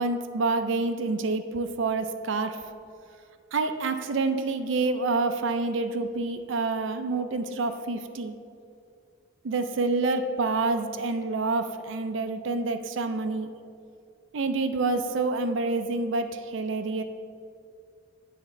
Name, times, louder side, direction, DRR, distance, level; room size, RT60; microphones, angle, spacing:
voice 1, 0.0-2.6 3.5-8.4 9.4-13.5 14.3-17.0, right 3 dB, 70° right, 7 dB, 0.5 m, -27 dB
7.8 x 3.6 x 6.5 m, 2.3 s
head